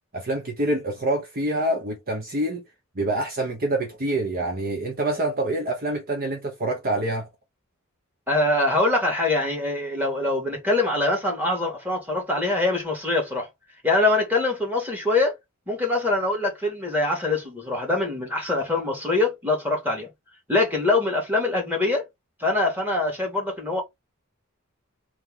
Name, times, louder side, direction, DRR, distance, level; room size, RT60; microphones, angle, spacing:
voice 1, 0.1-2.6 3.0-7.3, right 1 dB, 40° right, 1.0 m, -26 dB
voice 2, 8.3-13.5 13.8-15.4 15.7-20.1 20.5-22.1 22.4-23.8, left 2 dB, 10° right, 2.1 m, -23 dB
3.7 x 3.1 x 3.7 m
head